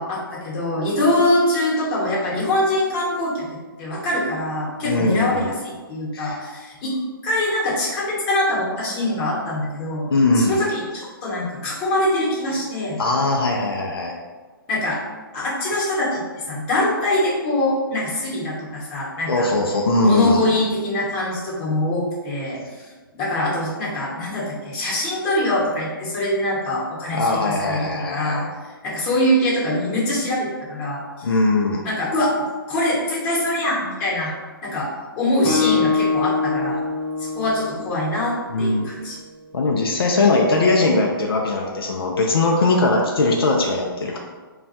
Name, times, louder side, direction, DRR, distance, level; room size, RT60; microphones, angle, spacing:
voice 1, 0.0-3.5 3.8-7.0 7.2-10.1 10.3-13.0 14.7-15.0 15.3-16.2 16.5-19.5 20.0-31.3 31.8-34.3 34.6-36.8 37.2-39.2, left 1 dB, 30° left, -6 dB, 1.0 m, -23 dB
voice 2, 4.8-5.5 6.1-6.4 10.1-10.6 13.0-14.1 19.3-20.5 27.1-28.4 31.2-31.8 38.5-38.9 39.5-44.2, left 2 dB, 85° left, 0 dB, 0.5 m, -20 dB
Guitar, 35.4-39.1, left 5 dB, 5° left, 0.4 m, -24 dB
2.3 x 2.2 x 4.0 m, 1.4 s
hypercardioid pair, 150°, 12 cm